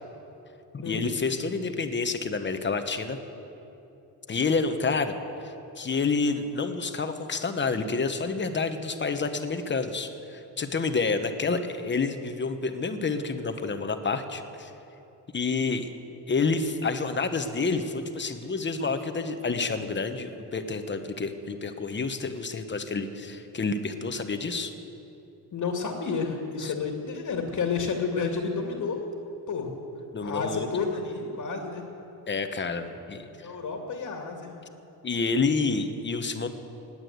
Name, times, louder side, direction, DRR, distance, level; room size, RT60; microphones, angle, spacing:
voice 1, 0.7-3.2 4.3-5.1 5.4-14.7 15.3-15.9 16.3-24.7 26.6-26.7 30.1-30.8 32.3-33.3 35.0-36.5, left 4 dB, 25° left, 8 dB, 1.1 m, -29 dB
voice 2, 25.5-29.1 29.5-29.7 30.2-31.9 33.3-34.5, left 5 dB, 45° left, 2 dB, 2.1 m, -30 dB
19.5 x 8.8 x 8.0 m, 3.0 s
cardioid pair, 110°, 41 cm